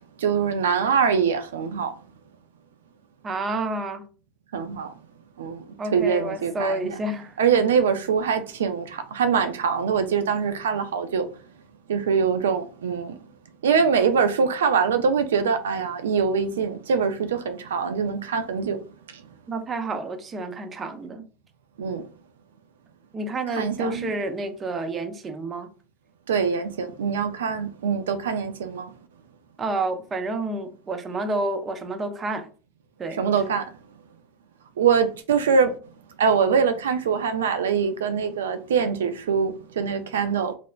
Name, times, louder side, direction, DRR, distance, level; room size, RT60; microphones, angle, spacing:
voice 1, 0.2-1.9 4.5-4.9 5.4-5.6 5.9-6.8 7.4-11.3 11.9-13.2 13.6-18.8 19.1-19.2 21.8-22.0 23.6-24.1 26.3-28.9 33.1-33.7 34.8-35.8 36.2-40.5, right 6 dB, 85° right, 0.4 m, -23 dB
voice 2, 3.2-4.0 5.8-7.4 19.5-21.2 23.1-25.7 29.6-32.5 33.0-33.2, right 2 dB, 30° right, 0.5 m, -29 dB
3.1 x 2.0 x 2.3 m
hypercardioid pair, 90°, 0 cm